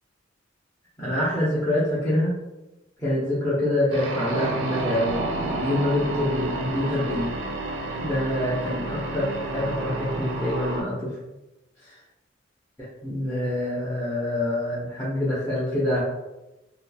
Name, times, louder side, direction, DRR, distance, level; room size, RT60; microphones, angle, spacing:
voice 1, 1.0-2.3 3.0-7.3 8.0-11.2 11.8-12.0 13.0-16.0, left 1 dB, 15° left, -10 dB, 0.6 m, -26 dB
sound 1, 3.9-10.8, right 2 dB, 70° right, 0.4 m, -30 dB
2.8 x 2.4 x 2.3 m, 1.0 s
head